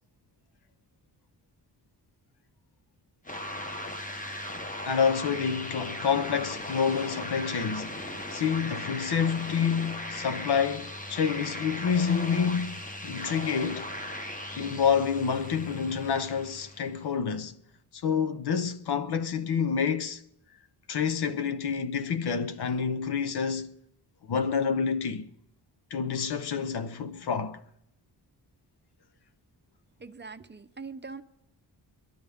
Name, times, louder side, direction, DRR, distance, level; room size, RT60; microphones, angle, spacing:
sound 1, 3.3-17.0, left 1 dB, 20° left, 1.3 m, -38 dB
voice 1, 4.9-13.9 14.6-17.5 17.9-20.2 20.9-23.7 24.2-25.3 25.9-27.6, left 6 dB, 65° left, 1.1 m, -28 dB
voice 2, 30.0-31.2, right 4 dB, 25° right, 0.7 m, -42 dB
24.0 x 11.5 x 3.6 m
cardioid pair, 105°, 41 cm